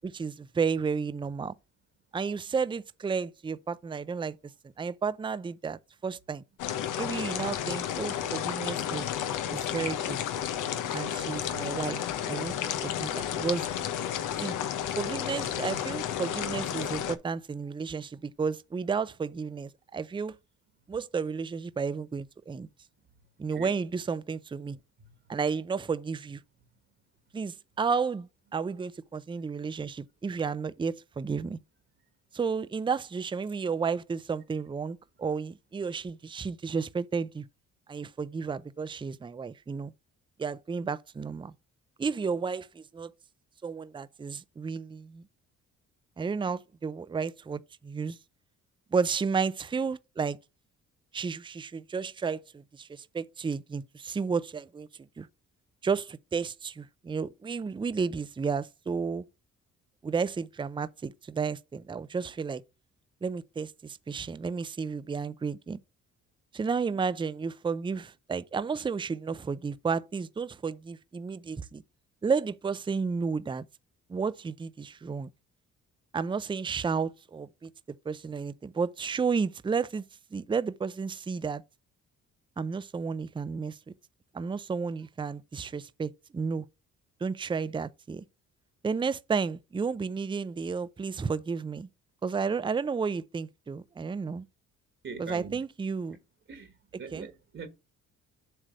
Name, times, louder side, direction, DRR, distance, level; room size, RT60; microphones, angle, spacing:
voice 1, 0.0-1.5 2.1-4.4 4.8-6.4 7.0-9.1 9.5-10.2 10.9-12.5 12.8-13.7 14.4-14.6 15.0-20.4 20.9-22.7 23.4-24.8 25.3-26.4 27.3-31.6 32.3-37.4 37.9-39.9 40.4-41.5 42.0-43.1 43.6-45.2 46.2-48.2 48.9-50.4 51.1-54.9 55.2-55.3 55.8-59.3 60.0-62.6 63.2-65.8 66.5-71.8 72.2-73.6 74.1-75.3 76.1-77.7 78.1-80.0 80.3-81.6 82.6-83.8 84.3-86.6 87.2-88.2 88.8-91.9 92.2-94.4 95.2-96.2 97.1-97.3, right 5 dB, 15° right, 0.5 m, -32 dB
sound 1, 6.6-17.2, left 10 dB, 85° left, 1.0 m, -32 dB
voice 2, 25.0-25.4 95.0-95.6 96.5-97.7, right 5 dB, 40° right, 1.4 m, -43 dB
7.6 x 3.3 x 6.3 m
cardioid pair, 90°, 30 cm